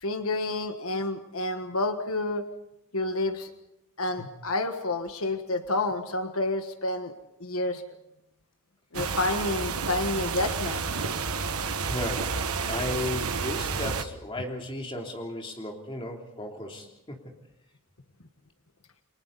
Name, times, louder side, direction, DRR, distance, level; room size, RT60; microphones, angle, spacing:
voice 1, 0.0-2.4 2.9-3.5 4.0-7.1 7.4-7.8 8.9-10.9, left 2 dB, 75° left, 7 dB, 1.4 m, -29 dB
sound 1, 8.9-14.0, right 5 dB, 90° right, 1.4 m, -30 dB
voice 2, 11.8-17.2, left 1 dB, 25° left, 1 dB, 3.2 m, -35 dB
29.5 x 24.0 x 4.1 m, 0.84 s
head